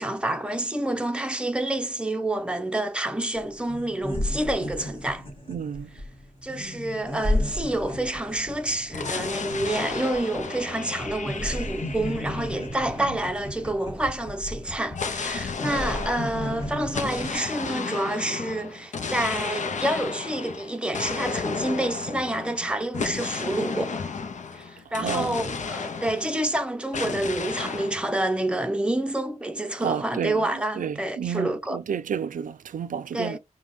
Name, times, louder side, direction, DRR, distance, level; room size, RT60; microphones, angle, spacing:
voice 1, 0.0-5.3 6.4-24.0 24.5-31.8 33.1-33.4, right 1 dB, 5° right, 0.6 m, -28 dB
sound 1, 3.3-3.4 3.7-10.7 11.0-17.4, left 1 dB, 40° left, 1.7 m, -33 dB
voice 2, 5.5-5.9 13.0-13.2 25.0-25.4 29.8-33.4, right 7 dB, 75° right, 0.4 m, -31 dB
sound 2, 8.9-13.6 14.9-26.6 26.9-28.0, left 5 dB, 60° left, 0.6 m, -33 dB
5.2 x 2.2 x 3.1 m
wide cardioid pair, 100°, 14 cm